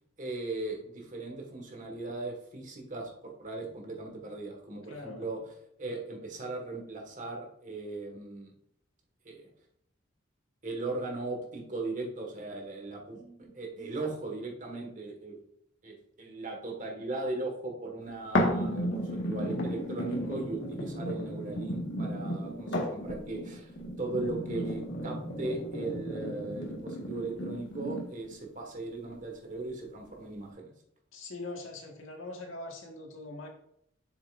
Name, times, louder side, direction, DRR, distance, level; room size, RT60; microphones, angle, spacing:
voice 1, 0.2-5.4 5.8-8.5 9.2-9.5 10.6-15.4 15.8-23.7 24.0-30.7, right 2 dB, 40° right, 1 dB, 1.6 m, -38 dB
voice 2, 4.9-5.3 31.1-33.5, left 2 dB, 85° left, 1 dB, 1.6 m, -42 dB
sound 1, 18.3-28.3 28.9-29.0, equal, 65° left, 1.6 m, -34 dB
7.4 x 7.0 x 2.5 m, 0.70 s
head